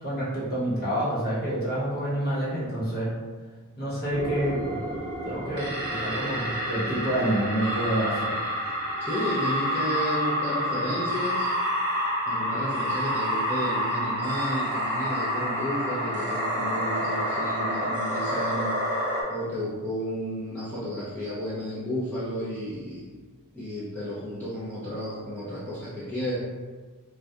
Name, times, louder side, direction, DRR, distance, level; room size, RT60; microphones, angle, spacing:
voice 1, 0.0-3.2 3.8-4.8 5.2-8.4, right 1 dB, 45° left, -8 dB, 0.9 m, -28 dB
sound 1, 4.1-19.2, equal, 55° right, 0.6 m, -28 dB
voice 2, 9.0-11.6 12.3-18.9 19.3-23.0 23.5-26.4, equal, 10° left, -10 dB, 0.4 m, -32 dB
2.6 x 2.2 x 2.3 m, 1.4 s
head